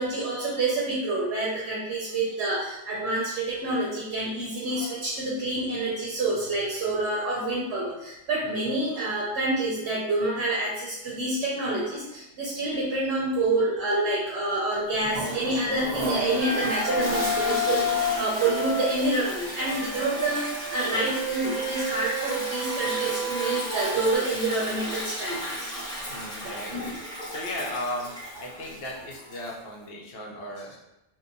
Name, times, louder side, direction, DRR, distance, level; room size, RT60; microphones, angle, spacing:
voice 1, 0.0-25.7 26.4-26.5, right 2 dB, 70° right, -4 dB, 0.8 m, -28 dB
voice 2, 8.4-8.8 26.1-30.8, left 1 dB, 60° left, -2 dB, 0.8 m, -37 dB
Toilet flush, 14.9-29.5, equal, 5° left, 0.7 m, -34 dB
Wind instrument woodwind instrument, 16.4-19.0 19.6-24.2, left 1 dB, 50° right, 0.7 m, -30 dB
2.8 x 2.1 x 2.5 m, 0.92 s
omnidirectional pair, 1.2 m